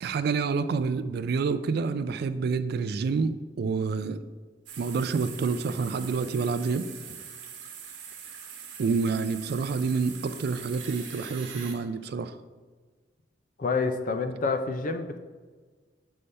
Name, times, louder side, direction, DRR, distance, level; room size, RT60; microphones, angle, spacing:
voice 1, 0.0-4.2 4.8-6.9 8.8-12.3, right 4 dB, 60° right, 12 dB, 0.3 m, -28 dB
sound 1, 4.7-11.8, right 7 dB, 80° right, 1.1 m, -43 dB
voice 2, 13.6-15.2, left 4 dB, 45° left, 7 dB, 0.5 m, -28 dB
6.7 x 5.4 x 3.3 m, 1.4 s
head